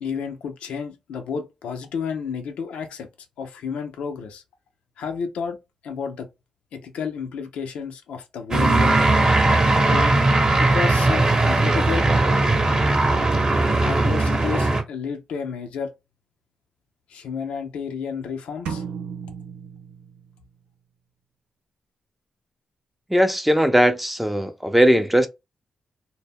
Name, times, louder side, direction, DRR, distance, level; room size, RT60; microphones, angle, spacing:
voice 1, 0.0-3.1 3.4-4.4 5.0-5.6 5.8-6.3 6.7-9.0 9.9-10.1 10.6-12.1 13.8-15.9 17.1-18.8, left 6 dB, 75° left, 0.4 m, -31 dB
sound 1, 8.5-14.8, right 2 dB, 35° right, 0.8 m, -19 dB
sound 2, 18.7-20.5, right 6 dB, 80° right, 0.4 m, -35 dB
voice 2, 23.1-25.3, equal, 5° right, 0.5 m, -18 dB
2.1 x 2.0 x 3.4 m
hypercardioid pair, 40°, 2 cm